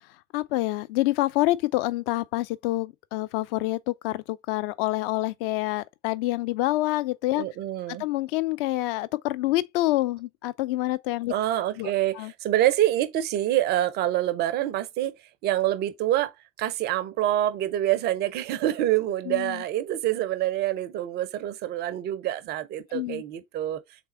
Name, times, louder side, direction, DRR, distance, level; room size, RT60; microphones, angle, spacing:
voice 1, 0.3-7.4 7.9-11.3 11.8-12.3 19.3-19.6 22.9-23.2, left 17 dB, 45° left, 0.5 m, -27 dB
voice 2, 7.3-8.0 11.3-15.2 15.4-23.8, right 13 dB, 25° right, 0.4 m, -26 dB
3.6 x 3.3 x 4.0 m
figure-of-eight pair, 80°, 41 cm